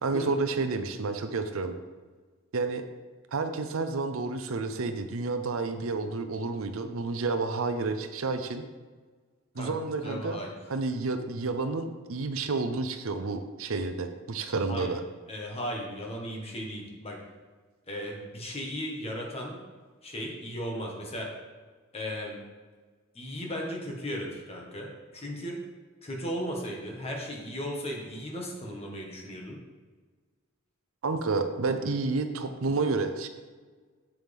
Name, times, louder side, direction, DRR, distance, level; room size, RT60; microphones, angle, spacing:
voice 1, 0.0-1.8 2.5-2.8 3.3-8.6 9.6-10.4 10.7-15.0 31.0-33.3, right 3 dB, 80° right, 8 dB, 0.7 m, -30 dB
voice 2, 9.6-10.5 14.7-14.9 15.3-17.2 17.9-19.6 20.0-21.3 21.9-22.4 23.1-25.6 26.0-29.6, equal, 30° left, -1 dB, 1.6 m, -36 dB
7.7 x 7.5 x 3.6 m, 1.4 s
head